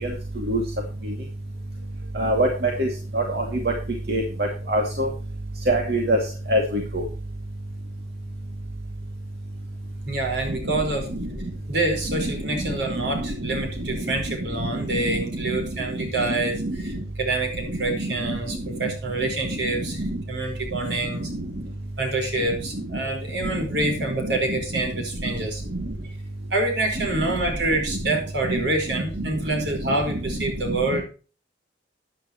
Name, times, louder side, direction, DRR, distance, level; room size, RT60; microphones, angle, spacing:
voice 1, 0.0-0.6 1.0-1.1 2.1-2.9 3.1-3.7 4.1-5.1 5.7-6.2 6.5-7.0 10.5-10.6 11.1-11.3 12.1-15.2 15.5-15.6 16.0-16.3 16.6-16.8 17.9-18.4 19.5-20.2 20.8-21.0 21.3-21.5 22.7-22.8 23.4-23.9 24.2-24.6 25.7-25.8 28.0-28.2 28.5-28.6 29.1-29.3 29.8-29.9 30.3-30.4 30.7-31.0, right 1 dB, 65° right, 1 dB, 2.4 m, -26 dB
voice 2, 10.1-11.1 11.7-21.3 22.0-25.6 26.5-31.0, right 2 dB, 80° right, 3 dB, 4.8 m, -27 dB
13.5 x 10.5 x 3.1 m, 0.36 s
head